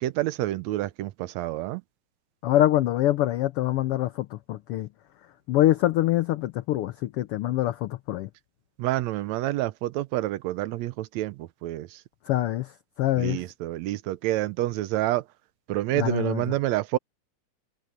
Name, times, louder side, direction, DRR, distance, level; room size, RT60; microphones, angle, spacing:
voice 1, 0.0-1.8 8.8-12.0 13.2-15.2 15.7-17.0, right 15 dB, 75° right, 1.8 m, -28 dB
voice 2, 2.4-4.9 5.5-8.3 12.3-12.7 13.0-13.4 15.9-16.5, left 14 dB, 90° left, 1.2 m, -24 dB
omnidirectional pair, 3.4 m